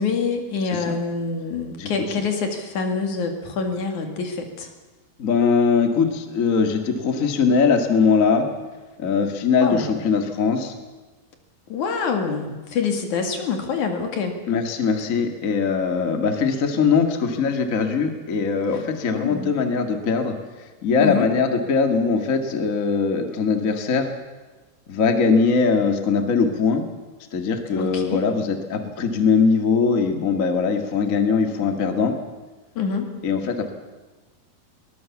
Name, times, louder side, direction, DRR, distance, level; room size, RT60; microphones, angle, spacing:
voice 1, 0.0-4.7 9.6-9.9 11.7-14.4 19.1-19.5 21.0-21.3 27.7-28.2 32.8-33.1, left 5 dB, 55° left, 4 dB, 3.3 m, -26 dB
voice 2, 0.6-1.0 1.8-1.9 5.2-8.5 9.0-10.7 14.5-24.1 24.9-26.8 27.3-32.1 33.2-33.7, left 5 dB, 40° left, 5 dB, 1.2 m, -21 dB
22.5 x 19.5 x 7.2 m, 1.2 s
omnidirectional pair, 4.5 m